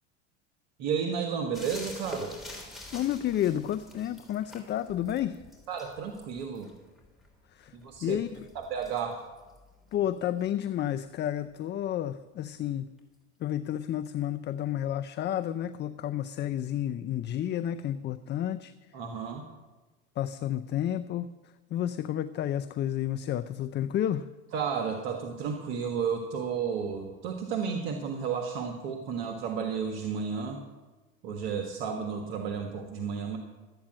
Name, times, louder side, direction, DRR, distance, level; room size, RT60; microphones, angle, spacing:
voice 1, 0.8-2.3 5.7-6.7 7.7-8.2 8.7-9.3 18.9-19.5 24.5-30.6 31.2-33.4, right 6 dB, 65° right, 4 dB, 1.5 m, -32 dB
sound 1, 1.5-10.9 13.0-13.1, left 1 dB, ahead, 3.7 m, -47 dB
voice 2, 2.9-5.4 7.5-8.5 9.9-12.9 13.4-18.7 20.2-24.3, left 11 dB, 30° left, 11 dB, 0.5 m, -31 dB
13.0 x 8.6 x 7.5 m, 1.2 s
hypercardioid pair, 90°, 36 cm